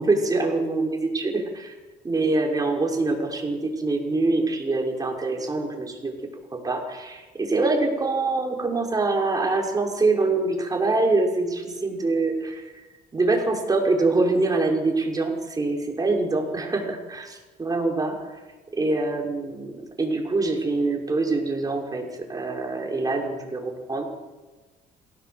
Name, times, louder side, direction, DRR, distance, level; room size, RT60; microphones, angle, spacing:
voice 1, 0.0-1.7 2.0-6.1 6.6-12.7 13.1-18.4 18.7-22.0 22.3-24.0, right 3 dB, 20° right, 1 dB, 5.9 m, -24 dB
28.5 x 17.5 x 8.1 m, 1.2 s
cardioid pair, 110°, 17 cm